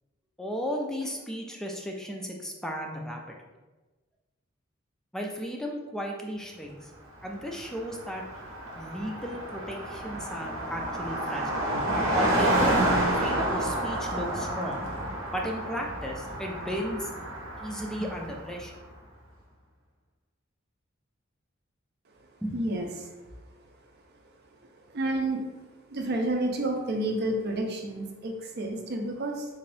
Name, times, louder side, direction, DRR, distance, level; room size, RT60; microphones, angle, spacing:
voice 1, 0.4-3.4 5.1-6.9 7.2-8.2 8.7-11.7 12.1-12.8 13.2-14.9 15.3-17.1 17.6-18.8 22.4-22.6, equal, 5° left, 0 dB, 0.3 m, -34 dB
Car passing by, 7.3-7.4 7.6-18.6, right 1 dB, 85° right, 0.9 m, -29 dB
voice 2, 22.5-23.1 24.9-25.4 25.9-29.5, right 1 dB, 55° right, 2 dB, 0.6 m, -30 dB
3.7 x 2.6 x 3.3 m, 1.2 s
head